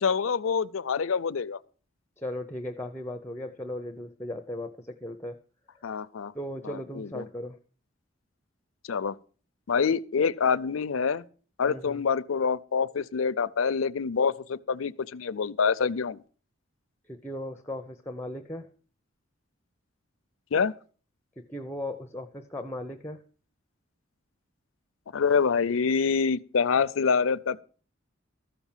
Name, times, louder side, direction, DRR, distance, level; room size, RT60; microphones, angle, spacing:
voice 1, 0.0-1.6 5.8-6.3 6.7-7.3 8.9-9.2 9.7-11.2 11.6-16.2 20.5-20.7 25.1-27.6, left 5 dB, 90° left, 0.5 m, -26 dB
voice 2, 2.2-5.4 6.3-7.6 11.7-12.0 17.1-18.7 21.4-23.2, left 1 dB, 10° left, 0.6 m, -37 dB
13.5 x 5.9 x 7.2 m
head